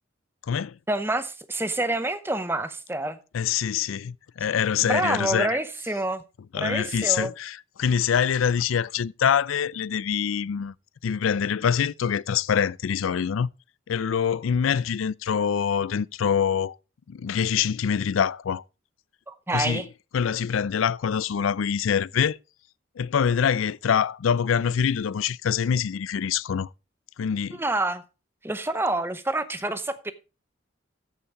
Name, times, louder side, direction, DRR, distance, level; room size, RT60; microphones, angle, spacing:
voice 1, 0.9-3.2 4.8-6.2 6.6-7.3 19.3-19.9 27.5-28.0 28.4-30.1, right 2 dB, 10° right, 0.7 m, -27 dB
voice 2, 3.3-5.5 6.5-10.7 11.0-13.5 13.9-16.8 17.1-18.6 19.5-19.8 20.1-22.4 23.0-26.7 27.2-27.6, left 7 dB, 90° left, 0.4 m, -25 dB
13.5 x 5.7 x 4.6 m
head